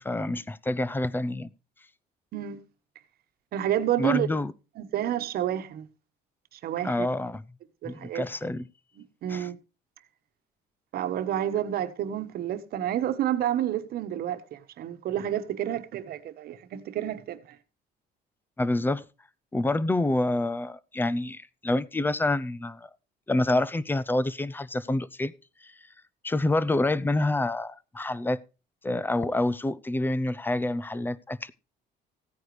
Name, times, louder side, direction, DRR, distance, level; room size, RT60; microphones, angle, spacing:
voice 1, 0.0-1.5 4.0-4.5 6.8-7.4 7.9-8.6 9.3-9.5 18.6-19.0 19.5-22.9 23.3-25.3 25.6-25.7 26.2-28.4 28.8-31.5, left 2 dB, 10° left, 0.6 m, -27 dB
voice 2, 2.3-2.6 3.5-4.3 4.8-5.9 6.5-7.1 7.8-8.2 9.0-9.6 10.9-17.6, right 11 dB, 60° right, 1.3 m, -29 dB
16.0 x 9.3 x 3.2 m
cardioid pair, 140°, 18 cm